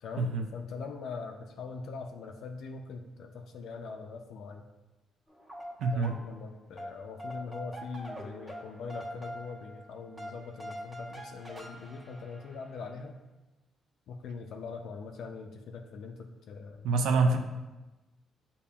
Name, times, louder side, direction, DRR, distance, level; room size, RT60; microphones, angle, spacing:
voice 1, 0.0-4.7 5.9-13.2 14.1-16.9, left 4 dB, 75° left, 3 dB, 0.3 m, -42 dB
sound 1, 5.3-6.5 6.8-12.9, equal, 10° right, 1.0 m, -44 dB
voice 2, 5.8-6.2 16.8-17.4, right 3 dB, 85° right, 5 dB, 0.3 m, -26 dB
6.7 x 2.7 x 2.3 m, 1.1 s
cardioid pair, 90°, 0 cm